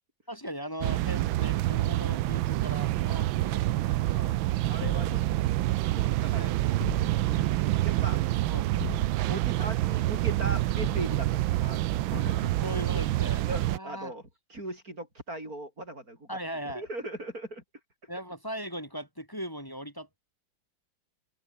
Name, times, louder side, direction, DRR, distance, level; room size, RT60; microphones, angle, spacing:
voice 1, 0.3-4.0 6.2-6.6 8.5-9.0 12.6-13.4 13.7-14.1 16.3-16.9 18.1-20.2, equal, 10° left, 7.3 m, -39 dB
sound 1, 0.8-13.8, right 16 dB, 80° right, 1.4 m, -27 dB
voice 2, 4.0-4.4 4.7-5.4 5.9-6.5 7.3-7.5 7.8-8.2 9.3-12.5 13.5-14.2 14.5-16.4 16.7-17.6, right 1 dB, 45° right, 8.7 m, -39 dB
sound 2, 4.8-5.9 6.8-7.7 8.8-9.5 10.8-11.3, left 2 dB, 50° left, 6.7 m, -39 dB
omnidirectional pair, 2.2 m